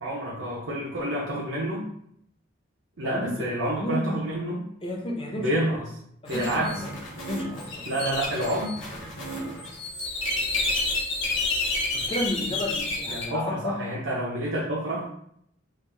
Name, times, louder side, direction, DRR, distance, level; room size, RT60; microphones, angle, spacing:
voice 1, 0.0-1.8 3.0-4.6 5.4-5.8 6.3-6.8 7.9-8.8 13.1-15.1, right 1 dB, 65° right, -4 dB, 0.6 m, -28 dB
voice 2, 3.0-3.4 3.7-4.2 4.8-5.5 6.2-6.9 7.2-8.1 11.9-13.9, left 1 dB, 25° left, 0 dB, 0.6 m, -32 dB
sound 1, 6.3-13.2, left 2 dB, 65° left, 1.1 m, -30 dB
3.5 x 2.5 x 3.3 m, 0.71 s
head